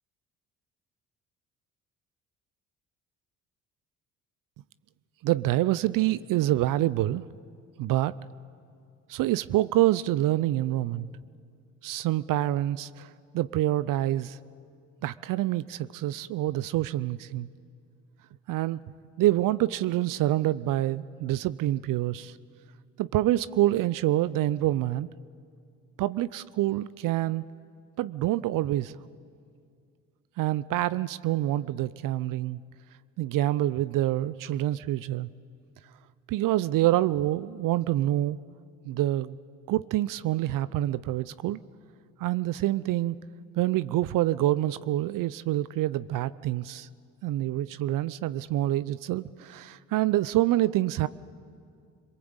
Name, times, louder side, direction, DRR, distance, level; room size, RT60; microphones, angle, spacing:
voice 1, 5.2-7.2 7.8-8.2 9.1-11.1 11.8-13.1 13.3-14.4 15.0-17.5 18.5-18.8 19.2-22.4 23.0-25.1 26.0-27.4 28.0-28.9 30.4-32.6 33.2-35.3 36.3-38.4 38.8-39.4 39.7-41.6 42.2-43.2 43.5-46.9 47.2-51.1, right 15 dB, 60° right, 17 dB, 0.6 m, -26 dB
26.5 x 22.0 x 8.1 m, 2.3 s
hypercardioid pair, 55°, 38 cm